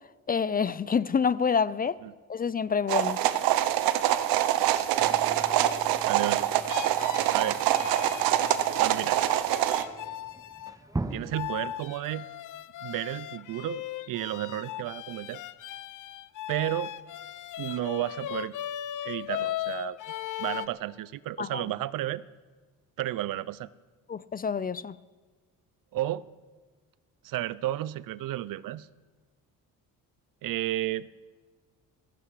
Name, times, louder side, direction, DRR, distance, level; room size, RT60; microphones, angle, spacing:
voice 1, 0.3-2.0 2.3-3.2 21.4-21.6 24.1-25.0, left 6 dB, 25° left, 18 dB, 0.4 m, -27 dB
sound 1, 2.9-9.8, right 12 dB, 85° right, 0.9 m, -25 dB
sound 2, 5.0-11.3, right 2 dB, 10° right, 0.9 m, -41 dB
voice 2, 6.1-6.9 7.3-7.6 8.8-9.2 11.1-12.3 12.8-15.4 16.5-16.9 17.6-18.5 19.0-20.0 20.4-22.2 23.0-23.7 25.9-26.3 27.2-28.9 30.4-31.1, right 14 dB, 70° right, 19 dB, 0.6 m, -32 dB
sound 3, 6.7-10.7 11.3-20.7, left 12 dB, 60° left, 0.7 m, -38 dB
17.0 x 15.5 x 4.8 m, 1.4 s
cardioid pair, 95°, 35 cm